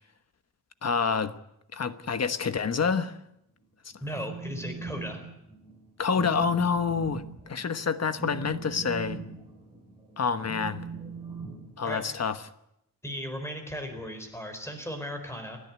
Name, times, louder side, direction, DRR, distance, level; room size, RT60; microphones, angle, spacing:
voice 1, 0.8-1.3 1.7-3.2 6.0-9.2 10.2-10.9 11.8-12.4, left 5 dB, 50° left, 1.1 m, -27 dB
Telephone, 3.9-5.2 5.5-5.8 6.1-12.3, right 4 dB, 15° right, 4.6 m, -39 dB
voice 2, 4.0-5.2 11.8-12.0 13.0-15.6, equal, 10° left, 4.3 m, -36 dB
29.0 x 10.5 x 9.6 m
wide cardioid pair, 175°, 34 cm